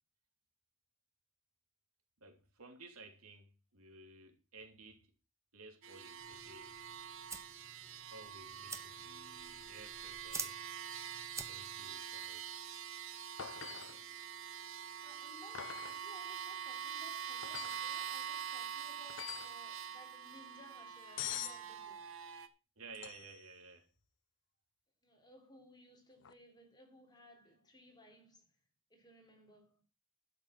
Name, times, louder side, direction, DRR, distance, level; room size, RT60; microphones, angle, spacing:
voice 1, 2.2-5.1 5.5-6.8 8.1-10.6 11.4-12.7 22.8-23.9, right 3 dB, 80° right, 3.2 m, -55 dB
sound 1, 5.8-22.5, right 9 dB, 65° right, 1.2 m, -45 dB
sound 2, 6.2-11.9, right 4 dB, 15° right, 1.0 m, -49 dB
sound 3, 13.4-14.0 15.5-16.0 17.4-17.9 19.1-19.6 21.2-21.6 22.9-23.4 26.2-26.3, left 10 dB, 60° left, 0.7 m, -44 dB
voice 2, 15.0-22.1 25.0-28.6 28.9-29.8, left 1 dB, 20° left, 3.7 m, -60 dB
12.0 x 6.7 x 6.0 m
head